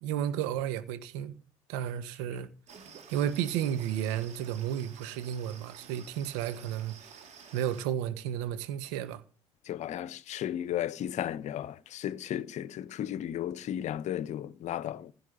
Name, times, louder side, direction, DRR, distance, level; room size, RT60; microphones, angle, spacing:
voice 1, 0.0-1.3 1.7-2.5 3.1-7.1 7.5-9.2, right 10 dB, 65° right, 1.5 m, -32 dB
sound 1, 2.7-7.8, right 6 dB, 45° right, 3.5 m, -51 dB
voice 2, 9.7-15.1, left 11 dB, 45° left, 0.9 m, -34 dB
16.0 x 6.3 x 9.2 m
figure-of-eight pair, 60°, 16 cm